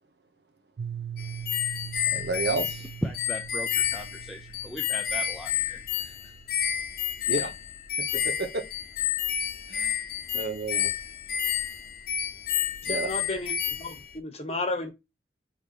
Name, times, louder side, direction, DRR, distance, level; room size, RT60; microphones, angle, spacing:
Piano, 0.8-6.4, right 9 dB, 90° right, 0.4 m, -41 dB
sound 1, 1.2-14.1, left 9 dB, 55° left, 0.8 m, -30 dB
voice 1, 2.1-2.9 7.3-7.5 8.2-8.6 9.7-10.0 10.3-10.9 12.9-13.1, right 3 dB, 65° right, 1.0 m, -31 dB
voice 2, 3.0-5.8, equal, ahead, 0.4 m, -37 dB
voice 3, 12.8-14.9, left 2 dB, 35° left, 1.0 m, -33 dB
5.3 x 3.3 x 2.5 m
head